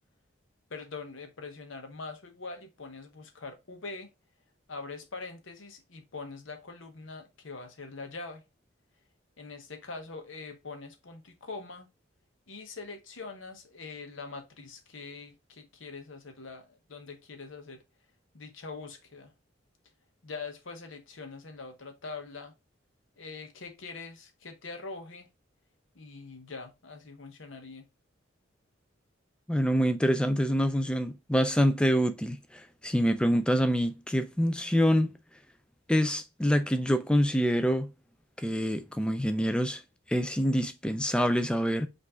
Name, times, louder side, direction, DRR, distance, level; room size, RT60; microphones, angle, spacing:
voice 1, 0.7-4.1 4.7-8.4 9.4-11.9 12.5-17.8 18.3-19.3 20.2-22.5 23.2-25.3 25.9-27.9, left 4 dB, 75° left, 0.9 m, -43 dB
voice 2, 29.5-35.2 35.9-37.9 38.4-39.8 40.1-41.9, equal, 5° left, 0.3 m, -26 dB
5.2 x 2.6 x 3.4 m
head